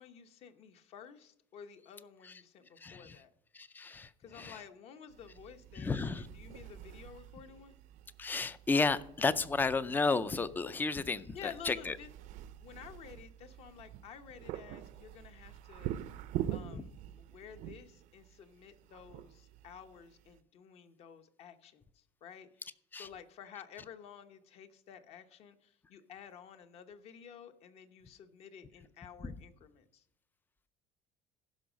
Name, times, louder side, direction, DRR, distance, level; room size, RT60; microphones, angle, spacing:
voice 1, 0.0-3.3 4.2-7.8 11.3-12.1 12.6-16.0 16.5-22.5 22.9-30.0, left 8 dB, 45° left, 9 dB, 1.0 m, -52 dB
voice 2, 2.8-3.2 3.5-4.1 4.3-4.6 5.8-6.3 8.2-11.9 16.7-16.9 22.9-23.1 29.2-29.3, left 4 dB, 15° left, 16 dB, 0.4 m, -32 dB
sound 1, 5.1-20.4, right 12 dB, 60° right, 0.6 m, -46 dB
15.0 x 6.3 x 5.1 m, 0.73 s
cardioid pair, 170°, 15 cm